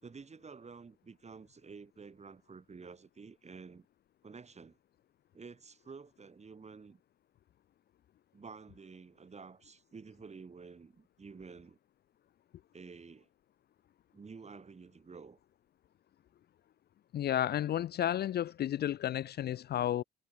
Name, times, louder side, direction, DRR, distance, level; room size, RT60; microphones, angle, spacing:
voice 1, 0.0-3.9 4.2-4.8 5.3-7.0 8.3-11.8 12.7-13.3 14.1-15.4, right 5 dB, 35° right, 5.5 m, -50 dB
voice 2, 17.1-20.0, left 11 dB, 55° left, 0.5 m, -32 dB
cardioid pair, 90°, 20 cm